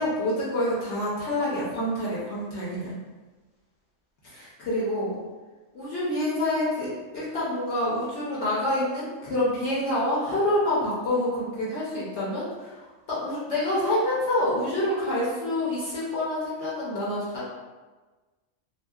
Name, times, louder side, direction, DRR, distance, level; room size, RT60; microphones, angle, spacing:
voice 1, 0.0-2.9 4.3-5.2 5.7-17.5, left 1 dB, 60° left, -8 dB, 1.0 m, -27 dB
2.7 x 2.7 x 2.3 m, 1.3 s
omnidirectional pair, 1.4 m